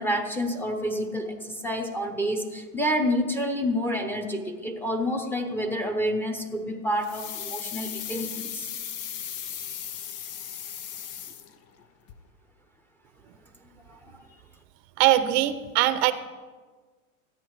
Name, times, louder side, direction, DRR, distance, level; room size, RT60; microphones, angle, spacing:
voice 1, 0.0-8.7 13.9-14.1, equal, 5° left, 3 dB, 0.9 m, -28 dB
sound 1, 7.0-11.8 12.1-12.2, left 9 dB, 35° left, 0.8 m, -36 dB
voice 2, 15.0-16.1, right 14 dB, 50° right, 12 dB, 0.8 m, -21 dB
13.5 x 9.1 x 4.8 m, 1.4 s
supercardioid pair, 135°, 42 cm